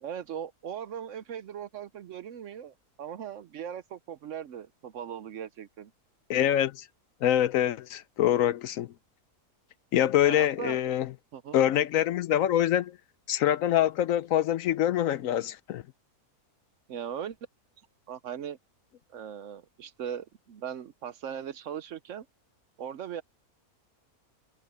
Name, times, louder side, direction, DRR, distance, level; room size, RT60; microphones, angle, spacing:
voice 1, 0.0-5.9 10.2-10.8 11.3-11.6 16.9-17.4 18.1-18.6 19.1-22.3 22.8-23.2, right 8 dB, 65° right, 0.9 m, -39 dB
voice 2, 6.3-6.9 7.2-8.9 9.9-11.1 11.5-13.0 13.3-15.8, left 11 dB, 70° left, 0.9 m, -25 dB
omnidirectional pair, 1.6 m